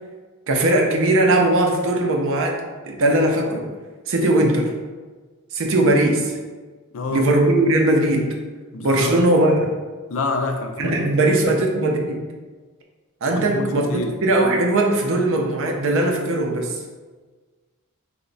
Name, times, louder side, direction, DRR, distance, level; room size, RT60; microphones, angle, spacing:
voice 1, 0.5-3.7 4.1-4.7 5.5-6.4 7.1-8.3 8.8-9.8 10.8-12.2 13.2-16.8, right 1 dB, 60° right, 2 dB, 0.5 m, -19 dB
voice 2, 6.9-7.3 8.7-9.2 10.1-11.6 13.3-14.2, left 3 dB, 65° left, 4 dB, 0.4 m, -28 dB
3.0 x 2.2 x 3.8 m, 1.3 s
head